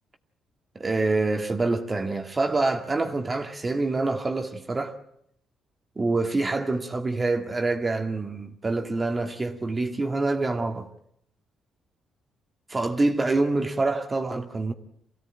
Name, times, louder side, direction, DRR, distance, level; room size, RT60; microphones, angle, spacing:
voice 1, 0.8-5.0 6.0-10.9 12.7-14.7, right 3 dB, 25° right, 2.0 m, -26 dB
24.5 x 16.5 x 8.9 m
cardioid pair, 90°, 0 cm